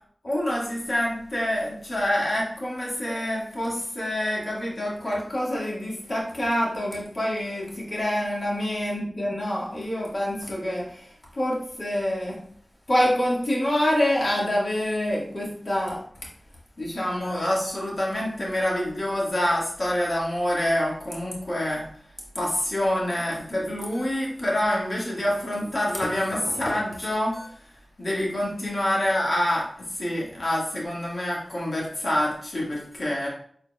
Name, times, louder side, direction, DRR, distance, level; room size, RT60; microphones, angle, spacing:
voice 1, 0.2-11.1 11.3-12.4 12.9-16.0 16.8-21.8 22.3-27.5 28.0-29.7 29.9-33.3, left 1 dB, 55° left, -5 dB, 1.7 m, -26 dB
4.4 x 4.2 x 2.3 m, 0.62 s
cardioid pair, 45°, 0 cm